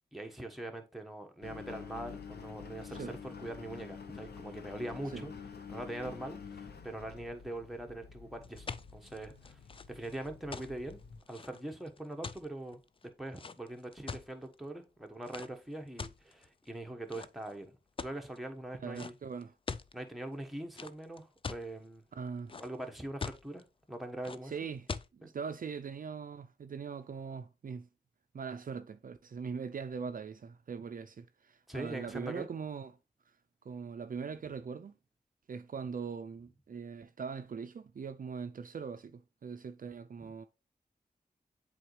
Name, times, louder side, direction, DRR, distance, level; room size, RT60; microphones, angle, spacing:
voice 1, 0.1-5.3 5.7-9.6 9.9-11.0 11.3-12.8 13.2-17.7 18.0-19.1 19.9-22.0 22.6-24.5 25.2-25.3 31.7-32.5 40.2-40.3, right 1 dB, ahead, 1.2 m, -42 dB
Engine, 1.4-11.2, left 6 dB, 85° left, 0.8 m, -48 dB
sound 1, 8.4-14.5 15.2-15.5 16.0-16.7 17.1-17.5 18.0-18.4 18.9-19.1 19.4-19.9 20.8-21.7 22.2-22.8 23.2-23.6 24.2-24.4 24.9-25.1, left 5 dB, 35° left, 0.4 m, -42 dB
voice 2, 18.8-19.5 22.1-22.6 24.4-27.9 28.3-33.0 33.6-35.0 35.5-40.5, right 6 dB, 60° right, 0.4 m, -41 dB
7.6 x 4.0 x 3.1 m
cardioid pair, 55°, 16 cm